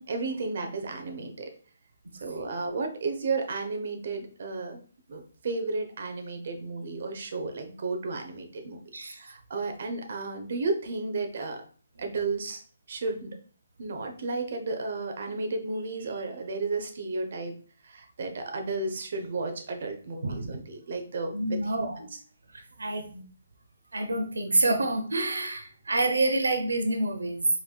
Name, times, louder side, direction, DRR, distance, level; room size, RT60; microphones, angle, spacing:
voice 1, 0.0-1.5 2.2-4.8 5.1-8.8 9.2-11.6 12.0-12.6 12.9-13.4 13.8-17.6 17.8-21.9 22.9-23.0, right 3 dB, 60° right, 5 dB, 0.9 m, -33 dB
voice 2, 21.3-22.1 22.8-23.2 23.9-27.5, right 2 dB, 90° right, 5 dB, 0.8 m, -27 dB
4.8 x 3.4 x 2.3 m, 0.42 s
hypercardioid pair, 150°, 0 cm